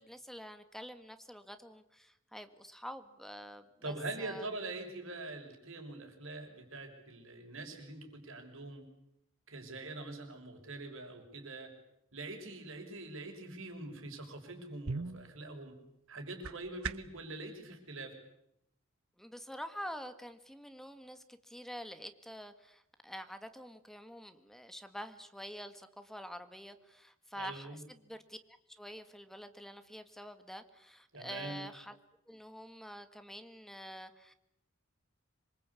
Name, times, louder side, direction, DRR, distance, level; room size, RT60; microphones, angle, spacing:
voice 1, 0.0-4.5 19.2-28.4 28.7-32.0 32.3-34.3, equal, ahead, 9 dB, 1.8 m, -47 dB
voice 2, 3.8-8.9 9.5-11.7 12.1-15.7 16.1-18.1 27.3-27.8 31.1-31.6, right 2 dB, 70° right, 4 dB, 6.2 m, -44 dB
sound 1, 14.8-17.3, right 4 dB, 90° right, 1.0 m, -42 dB
26.5 x 23.0 x 8.5 m, 0.77 s
head